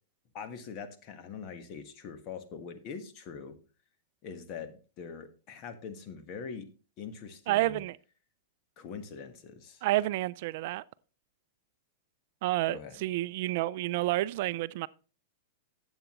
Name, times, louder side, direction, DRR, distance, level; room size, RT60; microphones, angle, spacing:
voice 1, 0.3-3.6 4.2-6.7 7.0-7.8 8.8-9.8 12.6-13.0, left 6 dB, 40° left, 1.4 m, -43 dB
voice 2, 7.5-8.0 9.8-10.8 12.4-14.9, right 17 dB, 55° right, 0.3 m, -29 dB
11.5 x 8.0 x 3.0 m
hypercardioid pair, 135°, 0 cm